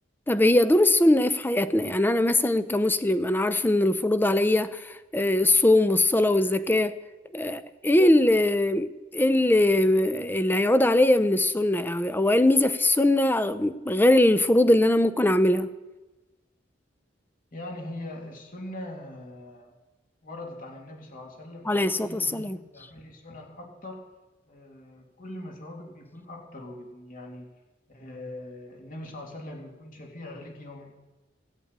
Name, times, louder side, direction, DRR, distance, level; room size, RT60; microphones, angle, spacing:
voice 1, 0.3-4.8 5.1-6.9 7.3-15.7 21.7-22.6, left 1 dB, 10° left, 0.6 m, -21 dB
voice 2, 17.5-19.7 20.2-24.0 24.5-27.5 27.9-30.9, left 1 dB, 50° left, 2.9 m, -41 dB
17.0 x 8.3 x 8.8 m
head